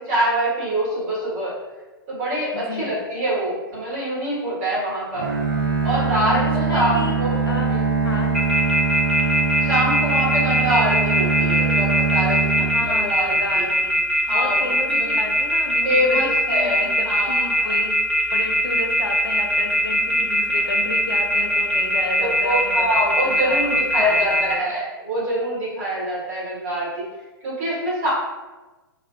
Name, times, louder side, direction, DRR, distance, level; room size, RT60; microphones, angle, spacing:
voice 1, 0.0-1.5 2.1-5.3 5.8-7.3 7.7-7.8 9.6-13.7 14.3-14.7 15.0-15.1 15.8-17.7 22.4-27.0 27.4-28.1, right 1 dB, 40° right, -7 dB, 1.4 m, -25 dB
voice 2, 2.5-3.0 6.3-7.1 7.4-7.7 8.0-8.3 12.7-14.0 14.3-18.0 18.3-24.6, left 2 dB, 80° left, 2 dB, 0.5 m, -32 dB
Bowed string instrument, 5.1-13.4, right 5 dB, 65° right, 0.5 m, -23 dB
sound 1, 8.3-24.5, equal, ahead, 0.5 m, -20 dB
3.1 x 2.3 x 2.5 m, 1.2 s
figure-of-eight pair, 110°, 12 cm